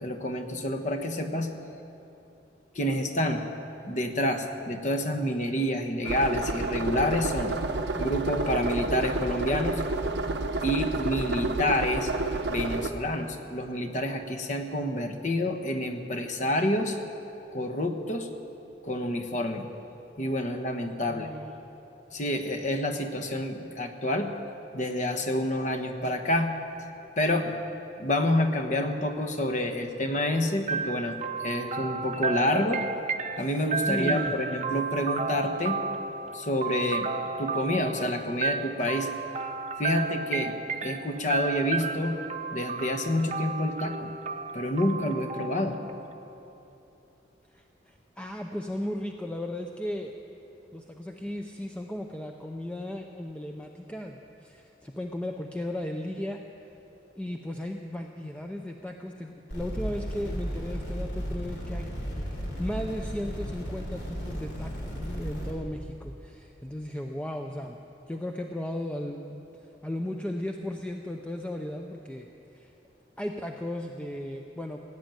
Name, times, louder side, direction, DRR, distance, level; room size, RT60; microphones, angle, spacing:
voice 1, 0.0-1.5 2.7-3.4 3.8-7.5 7.9-9.8 10.6-12.1 12.5-17.0 17.5-18.3 18.8-19.7 20.2-21.3 22.1-24.3 24.7-26.5 27.2-27.6 28.0-32.8 33.4-35.8 36.3-37.1 37.4-39.1 39.8-40.5 40.8-42.2 42.5-44.1 44.5-45.8, left 1 dB, 45° left, 6 dB, 1.2 m, -28 dB
sound 1, 6.0-12.9, right 2 dB, 80° right, 0.9 m, -30 dB
voice 2, 21.1-21.6 33.8-34.3 47.5-50.1 50.7-56.4 57.2-67.8 68.1-69.4 69.8-72.3 72.5-72.7 73.2-74.8, left 1 dB, 5° left, 2 dB, 0.6 m, -36 dB
sound 2, 30.7-46.5, right 4 dB, 40° right, 0.7 m, -33 dB
sound 3, 59.5-65.5, equal, 70° left, 3.3 m, -34 dB
17.0 x 9.3 x 8.9 m, 2.9 s
head